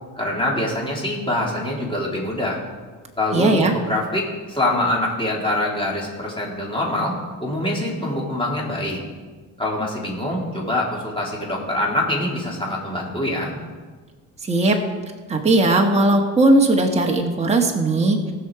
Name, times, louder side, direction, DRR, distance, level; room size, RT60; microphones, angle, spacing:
voice 1, 0.2-2.6 3.2-7.2 7.4-9.0 9.6-13.5, left 1 dB, 15° left, -3 dB, 3.5 m, -24 dB
voice 2, 3.3-3.7 14.4-14.8 15.3-18.2, right 2 dB, 15° right, 0 dB, 1.5 m, -18 dB
19.0 x 6.6 x 4.8 m, 1.4 s
cardioid pair, 105°, 38 cm